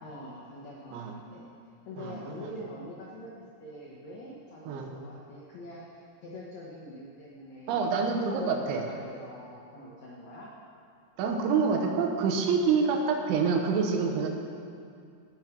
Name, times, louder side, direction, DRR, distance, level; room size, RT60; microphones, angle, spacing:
voice 1, 0.0-1.4 1.8-10.5, equal, 85° left, -4 dB, 1.5 m, -44 dB
voice 2, 7.7-8.9 11.2-14.3, right 5 dB, 85° right, 3 dB, 3.5 m, -27 dB
18.5 x 6.5 x 5.9 m, 2.3 s
omnidirectional pair, 5.4 m